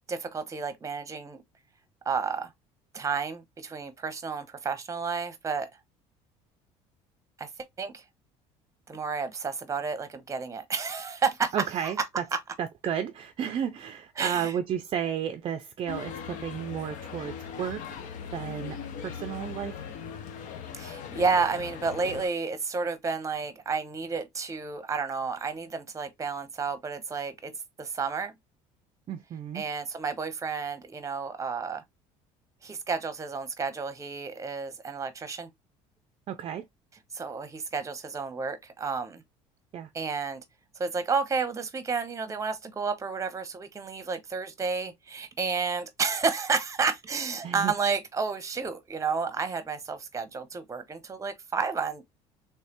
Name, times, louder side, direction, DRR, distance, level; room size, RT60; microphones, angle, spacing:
voice 1, 0.1-1.4 2.0-2.5 2.9-5.7 7.4-7.5 7.8-8.0 8.9-11.5 11.8-12.1 12.3-12.4 14.2-14.5 20.7-27.5 27.8-28.3 29.5-31.8 32.6-35.5 37.1-39.2 39.9-40.4 40.8-52.1, right 5 dB, 20° right, 0.8 m, -31 dB
voice 2, 11.5-12.0 12.6-17.8 18.3-18.8 19.0-19.8 29.1-29.6 36.3-36.6 39.7-39.9 47.4-47.7, right 9 dB, 40° right, 0.4 m, -32 dB
sound 1, 15.9-22.3, left 7 dB, 65° left, 0.8 m, -39 dB
3.3 x 3.2 x 2.9 m
supercardioid pair, 105°, 14 cm